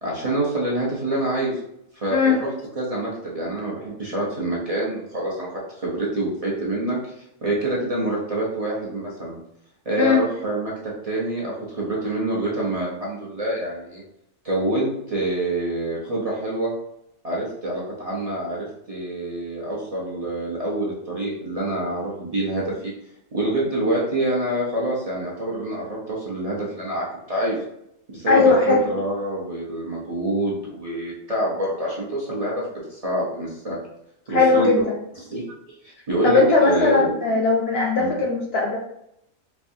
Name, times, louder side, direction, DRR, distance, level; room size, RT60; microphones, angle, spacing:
voice 1, 0.0-1.6 2.0-2.5 2.7-5.5 5.8-9.4 9.8-10.7 11.0-14.0 14.4-16.7 17.2-22.9 23.3-27.6 28.1-33.8 34.3-34.7 35.2-35.5 35.8-37.1 38.0-38.2, right 1 dB, 35° right, -6 dB, 0.7 m, -26 dB
voice 2, 28.3-28.8 34.3-34.9 36.2-38.8, left 4 dB, 60° left, -1 dB, 0.7 m, -18 dB
4.5 x 2.2 x 2.6 m, 0.79 s
omnidirectional pair, 1.4 m